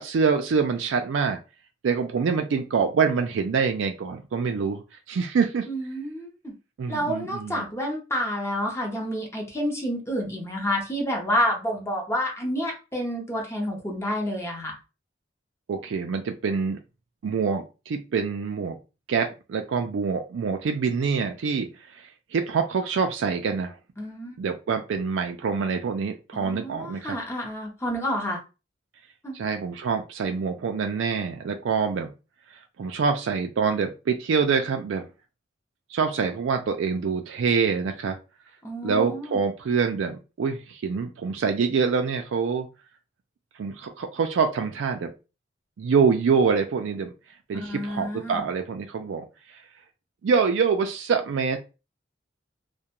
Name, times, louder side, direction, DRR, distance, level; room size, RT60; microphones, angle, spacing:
voice 1, 0.0-1.4 1.8-4.8 5.1-5.7 6.8-7.7 15.7-16.8 17.2-18.8 19.1-23.7 24.4-27.2 29.3-32.1 32.5-35.1 35.9-38.2 38.8-42.7 43.6-45.1 45.8-47.1 47.5-49.6 50.2-51.6, right 5 dB, 80° right, 5 dB, 0.4 m, -25 dB
voice 2, 5.7-6.5 6.9-14.8 24.0-24.4 26.3-28.4 29.2-29.4 38.6-39.4 47.5-48.4, equal, 15° left, 0 dB, 0.6 m, -29 dB
2.3 x 2.1 x 2.9 m, 0.30 s
head